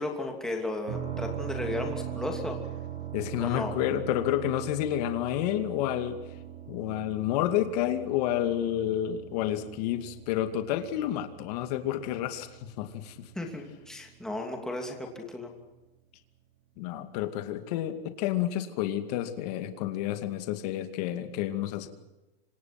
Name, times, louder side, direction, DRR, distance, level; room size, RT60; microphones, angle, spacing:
voice 1, 0.0-2.6 3.4-3.7 13.3-15.5, left 2 dB, ahead, 1 dB, 2.9 m, -35 dB
sound 1, 0.9-14.6, right 11 dB, 50° right, 7.2 m, -41 dB
voice 2, 3.1-6.2 6.7-13.3 16.8-21.9, left 12 dB, 40° left, 8 dB, 2.5 m, -30 dB
26.5 x 26.5 x 6.0 m, 1.0 s
supercardioid pair, 180°, 31 cm